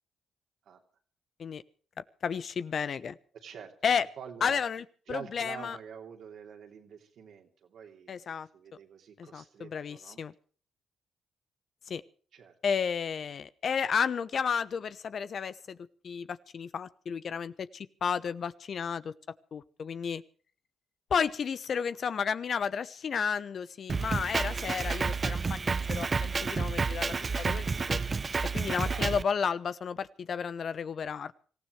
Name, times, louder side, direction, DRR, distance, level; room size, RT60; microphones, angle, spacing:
voice 1, 2.2-3.1 3.8-4.1 4.4-5.8 8.1-8.5 9.2-10.3 11.9-12.0 12.6-15.8 16.0-19.1 19.5-20.2 21.1-28.0 28.5-31.3, left 6 dB, 60° left, 15 dB, 0.9 m, -32 dB
voice 2, 3.3-3.7 4.2-4.6 5.1-10.2 12.3-12.5 28.9-29.1, right 7 dB, 70° right, 4 dB, 3.0 m, -47 dB
Drum kit, 23.9-29.2, right 4 dB, 40° right, 0.7 m, -30 dB
25.5 x 15.5 x 3.3 m, 0.42 s
hypercardioid pair, 50°, 0 cm